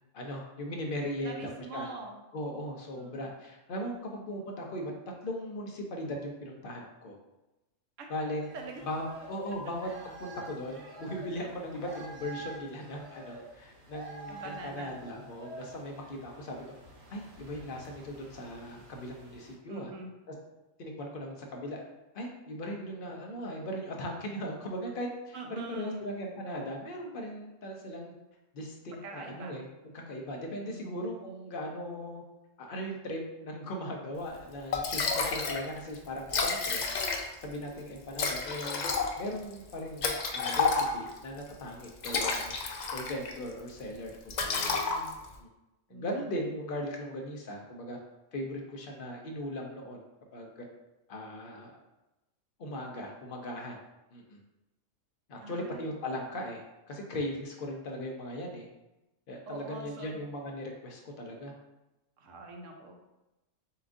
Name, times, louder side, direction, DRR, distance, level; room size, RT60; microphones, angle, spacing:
voice 1, 0.1-1.9 2.3-4.9 5.2-7.2 8.1-8.5 8.8-16.6 17.1-19.9 20.8-21.8 22.1-28.1 28.5-29.7 29.9-32.2 32.6-36.8 37.4-38.8 39.2-42.5 42.9-44.8 45.4-45.5 45.9-48.0 48.3-50.0 50.3-50.7 51.1-51.7 52.6-53.8 54.1-54.4 55.3-58.7 59.3-61.5, equal, 50° left, 1 dB, 0.8 m, -38 dB
voice 2, 1.2-2.1 2.9-3.2 8.0-8.1 8.5-8.8 9.8-9.9 14.3-14.9 19.7-20.1 25.3-26.1 29.0-29.5 30.7-30.9 44.4-45.1 45.9-46.2 55.4-55.9 59.5-60.1 62.2-63.0, right 2 dB, 75° right, 2 dB, 1.1 m, -44 dB
sound 1, 8.4-19.5, right 1 dB, 55° right, 1.1 m, -48 dB
Liquid, 34.4-34.5 34.7-35.6 35.9-36.0 36.2-37.5 38.1-41.2 41.8-43.4 43.7-43.9 44.3-45.3, left 4 dB, 80° left, 0.4 m, -30 dB
6.9 x 2.5 x 2.5 m, 0.98 s
omnidirectional pair, 1.3 m